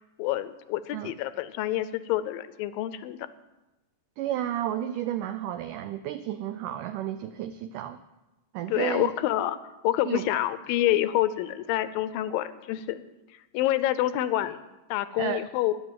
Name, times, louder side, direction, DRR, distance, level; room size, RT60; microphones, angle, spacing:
voice 1, 0.0-3.3 8.7-9.6 9.8-13.0 13.5-14.6 14.9-15.7, left 14 dB, 80° left, 14 dB, 2.2 m, -27 dB
voice 2, 4.2-8.0 8.5-9.1 10.0-10.3 15.2-15.4, right 12 dB, 85° right, 11 dB, 1.8 m, -32 dB
11.5 x 11.0 x 7.5 m, 1.0 s
omnidirectional pair, 4.3 m